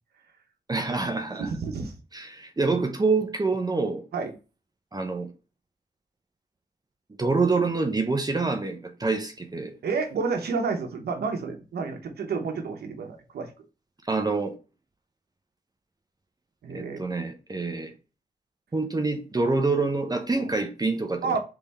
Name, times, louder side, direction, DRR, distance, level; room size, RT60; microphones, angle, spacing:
voice 1, 0.7-1.5 2.1-4.0 4.9-5.3 7.2-9.7 14.1-14.5 16.7-17.9 18.7-21.4, right 3 dB, 25° right, 0.7 m, -26 dB
voice 2, 1.4-2.0 4.1-4.3 9.8-13.5 16.6-17.0 20.3-20.5 21.2-21.4, right 4 dB, 90° right, 0.9 m, -30 dB
3.5 x 3.5 x 4.1 m
cardioid pair, 70°, 16 cm